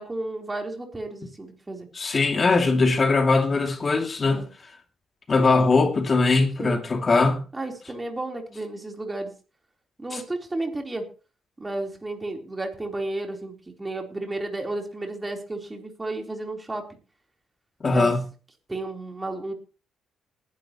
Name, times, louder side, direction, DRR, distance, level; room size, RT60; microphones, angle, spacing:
voice 1, 0.0-1.9 4.2-4.4 5.8-5.9 6.6-6.8 7.5-9.3 10.0-11.0 11.6-16.8 17.8-18.1 18.7-19.5, right 2 dB, 20° right, 3.8 m, -32 dB
voice 2, 1.9-4.5 5.3-7.4 10.1-10.2 17.8-18.2, left 3 dB, 35° left, 2.6 m, -21 dB
20.0 x 11.5 x 3.1 m
cardioid pair, 90°, 0 cm